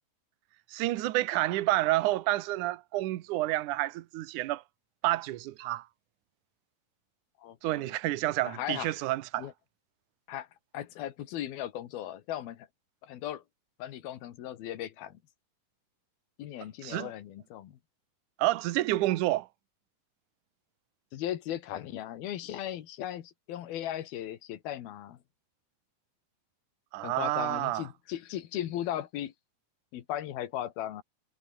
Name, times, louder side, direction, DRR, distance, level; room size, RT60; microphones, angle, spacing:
voice 1, 0.7-4.6 5.0-5.9 7.6-9.5 16.8-17.1 18.4-19.5 26.9-27.9, right 17 dB, 65° right, 2.2 m, -29 dB
voice 2, 7.4-7.9 8.4-8.9 9.4-9.5 10.3-10.5 10.7-12.7 13.0-13.4 13.8-15.2 16.4-17.8 21.1-25.2 27.0-29.3 29.9-31.0, left 12 dB, 80° left, 3.4 m, -37 dB
omnidirectional pair, 4.3 m